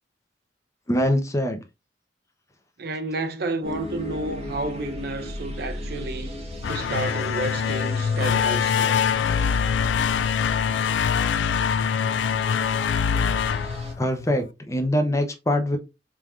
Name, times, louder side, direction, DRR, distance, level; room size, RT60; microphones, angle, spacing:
voice 1, 0.9-1.6 14.0-15.8, left 1 dB, 15° left, 0.6 m, -23 dB
voice 2, 2.8-6.3 6.7-9.0, right 2 dB, 60° right, 0.6 m, -31 dB
sound 1, 3.6-13.9, left 1 dB, 35° right, 1.2 m, -37 dB
sound 2, 6.5-14.5, left 7 dB, 85° left, 0.3 m, -24 dB
4.4 x 3.5 x 2.4 m
head